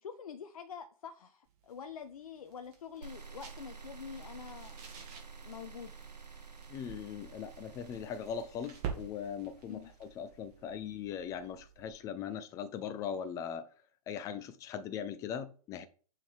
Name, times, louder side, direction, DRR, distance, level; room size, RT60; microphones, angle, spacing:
voice 1, 0.0-4.9 5.4-5.9 9.7-9.9, left 7 dB, 60° left, 0.6 m, -46 dB
sound 1, 1.4-12.1, right 7 dB, 35° right, 2.0 m, -49 dB
sound 2, 3.0-10.1, right 5 dB, 85° right, 0.9 m, -51 dB
voice 2, 6.7-13.7 14.1-15.9, left 8 dB, 15° left, 0.4 m, -40 dB
6.3 x 3.7 x 4.5 m
figure-of-eight pair, 115°, 21 cm